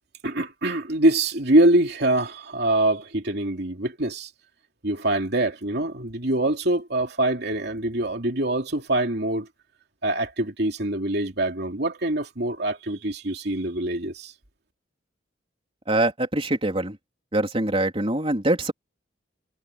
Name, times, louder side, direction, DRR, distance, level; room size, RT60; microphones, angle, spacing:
voice 1, 0.2-4.3 4.8-9.5 10.0-14.3, right 1 dB, 60° right, 2.9 m, -24 dB
voice 2, 15.9-17.0 17.3-18.7, right 1 dB, 30° right, 3.7 m, -24 dB
head